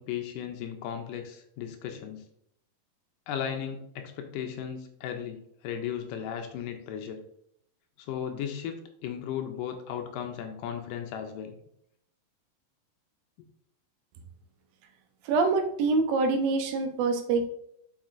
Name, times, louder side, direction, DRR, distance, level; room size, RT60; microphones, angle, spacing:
voice 1, 0.0-2.2 3.3-7.2 8.0-11.6, left 8 dB, 80° left, 5 dB, 2.1 m, -36 dB
voice 2, 15.3-17.5, right 3 dB, 85° right, 7 dB, 2.6 m, -25 dB
7.3 x 6.0 x 2.5 m, 0.72 s
omnidirectional pair, 4.1 m